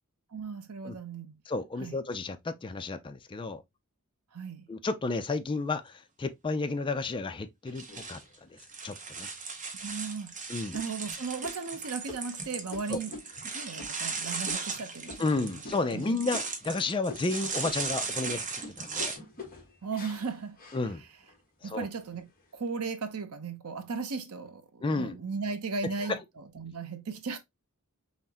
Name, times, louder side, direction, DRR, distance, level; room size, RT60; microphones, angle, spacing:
voice 1, 0.3-1.4 1.8-1.9 4.3-4.7 9.8-10.3 10.7-13.2 13.4-15.2 15.5-15.6 15.9-16.2 19.8-20.6 21.6-27.4, right 4 dB, 80° right, 0.7 m, -36 dB
voice 2, 1.5-3.6 4.7-8.2 8.5-9.3 10.5-10.8 12.9-13.0 15.2-19.2 20.7-21.0 21.6-21.9 24.8-25.2 25.8-26.2, left 3 dB, 20° left, 0.4 m, -32 dB
sound 1, 7.7-19.2, right 4 dB, 35° right, 0.7 m, -37 dB
sound 2, 7.9-8.7 9.3-9.4 9.9-10.3 10.7-16.0 16.3-16.8 17.1-21.4 21.9-22.4, left 2 dB, 40° left, 1.2 m, -46 dB
5.6 x 2.1 x 2.8 m
head